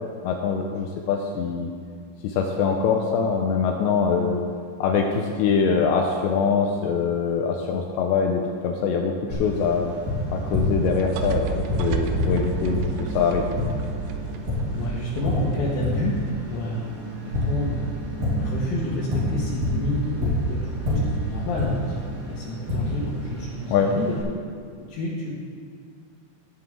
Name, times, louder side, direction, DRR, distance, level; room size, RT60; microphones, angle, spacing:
voice 1, 0.2-1.7 2.2-4.4 4.8-9.9 10.3-13.4 23.7-23.9, left 6 dB, 90° left, 2 dB, 2.5 m, -23 dB
Tap, 9.3-24.2, equal, 45° right, 4.1 m, -29 dB
sound 1, 10.8-16.8, right 5 dB, 80° right, 2.5 m, -32 dB
voice 2, 14.8-18.0 18.4-20.6 20.9-24.1 24.9-25.3, left 1 dB, 70° left, -7 dB, 3.3 m, -29 dB
18.5 x 7.8 x 3.6 m, 2.1 s
omnidirectional pair, 5.7 m